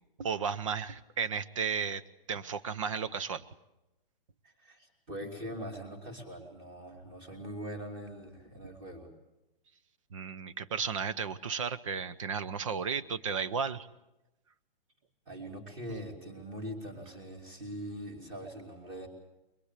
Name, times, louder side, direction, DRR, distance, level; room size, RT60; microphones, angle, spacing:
voice 1, 0.2-2.0 2.3-3.4 10.1-13.9, right 6 dB, 35° right, 14 dB, 0.8 m, -34 dB
voice 2, 4.4-9.1 15.3-19.1, equal, 15° right, 3 dB, 2.9 m, -42 dB
23.0 x 21.5 x 8.2 m, 0.96 s
hypercardioid pair, 180°, 29 cm